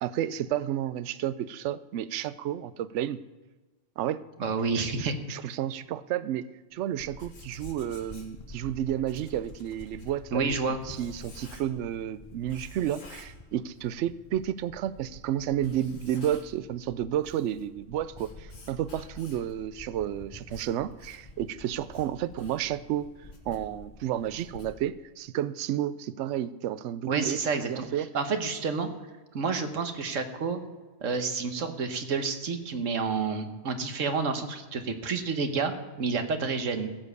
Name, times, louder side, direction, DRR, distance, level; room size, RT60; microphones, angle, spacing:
voice 1, 0.0-3.2 4.0-4.2 4.8-6.5 6.7-23.1 23.5-27.4 27.7-28.1, right 11 dB, 70° right, 16 dB, 0.9 m, -31 dB
voice 2, 4.4-5.1 10.3-10.8 27.1-27.9 28.1-28.9 29.3-30.6 31.0-36.9, right 4 dB, 90° right, 7 dB, 1.5 m, -29 dB
Writing, 6.9-11.9 12.5-13.9 14.2-14.3 15.0-15.1 15.5-16.7 17.0-19.6 20.1-25.2, left 2 dB, 90° left, 2.0 m, -51 dB
sound 1, 7.1-24.3, left 2 dB, 35° left, 1.1 m, -49 dB
16.0 x 7.2 x 6.7 m, 1.3 s
omnidirectional pair, 1.3 m